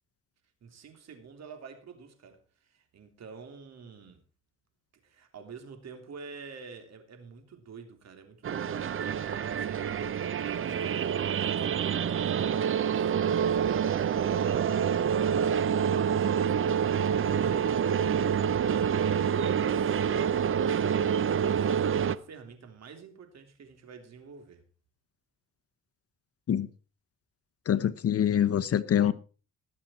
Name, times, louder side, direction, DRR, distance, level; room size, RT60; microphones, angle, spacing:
voice 1, 0.6-4.2 5.0-24.6, right 5 dB, 60° right, 3.4 m, -48 dB
sound 1, 8.4-22.2, right 8 dB, 45° right, 0.7 m, -27 dB
voice 2, 27.7-29.1, left 9 dB, 50° left, 1.0 m, -25 dB
19.5 x 7.4 x 4.5 m
cardioid pair, 90°, 30 cm